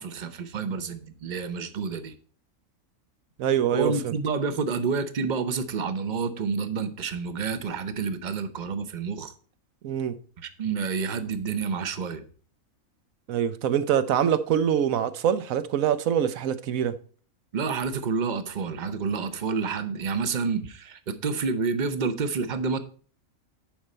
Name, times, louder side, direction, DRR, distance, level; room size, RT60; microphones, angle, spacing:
voice 1, 0.0-2.1 3.7-9.3 10.4-12.2 17.5-22.8, right 5 dB, 40° right, 0.8 m, -29 dB
voice 2, 3.4-4.1 9.8-10.2 13.3-17.0, right 9 dB, 80° right, 1.2 m, -24 dB
10.5 x 5.2 x 4.2 m
omnidirectional pair, 1.4 m